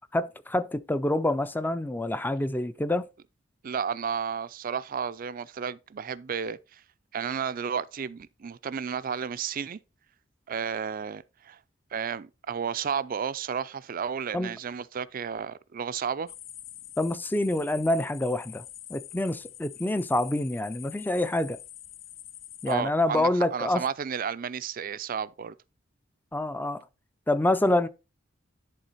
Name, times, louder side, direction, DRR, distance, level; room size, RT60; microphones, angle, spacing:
voice 1, 0.1-3.1 14.3-14.5 17.0-18.6 18.9-21.6 22.6-23.8 26.3-26.8 27.3-27.9, left 1 dB, 10° left, 0.5 m, -26 dB
voice 2, 3.6-6.8 7.1-9.8 10.5-11.6 11.9-16.3 22.7-25.5, right 7 dB, 45° right, 0.4 m, -32 dB
sound 1, 16.3-22.7, left 12 dB, 70° left, 0.6 m, -45 dB
11.0 x 3.8 x 4.2 m
head